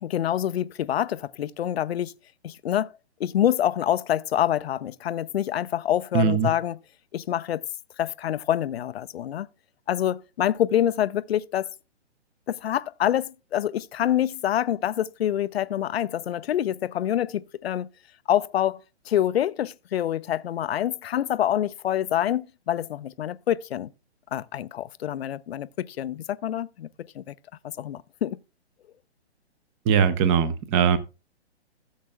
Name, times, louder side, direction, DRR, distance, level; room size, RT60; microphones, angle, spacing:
voice 1, 0.0-2.1 2.4-2.9 3.2-6.8 7.1-7.6 8.0-9.5 9.9-11.7 12.5-17.9 18.3-18.8 19.1-23.9 24.3-26.9 27.1-27.3 27.8-28.4, left 11 dB, 60° left, 0.6 m, -26 dB
voice 2, 6.1-6.5 29.9-31.0, right 7 dB, 25° right, 0.9 m, -20 dB
15.0 x 7.4 x 2.3 m
hypercardioid pair, 135°, 34 cm